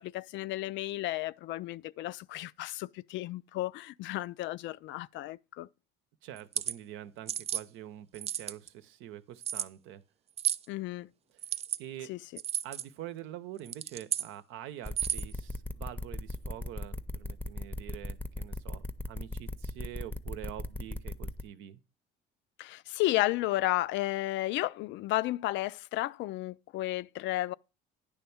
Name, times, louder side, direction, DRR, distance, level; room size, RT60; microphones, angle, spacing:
voice 1, 0.0-5.7 10.7-11.1 12.1-12.2 22.6-27.5, left 16 dB, 65° left, 0.4 m, -33 dB
voice 2, 6.2-10.0 11.3-11.4 11.8-12.1 12.6-21.8, right 12 dB, 75° right, 0.8 m, -45 dB
sound 1, 6.4-6.7 7.3-7.6 8.1-8.7 9.4-9.7 10.4-10.7 11.4-11.8 12.4-12.8 13.6-14.3 14.9-15.3, right 10 dB, 30° right, 0.3 m, -33 dB
sound 2, 14.8-21.4, left 1 dB, 10° left, 0.7 m, -37 dB
10.0 x 3.4 x 7.0 m
cardioid pair, 105°, 21 cm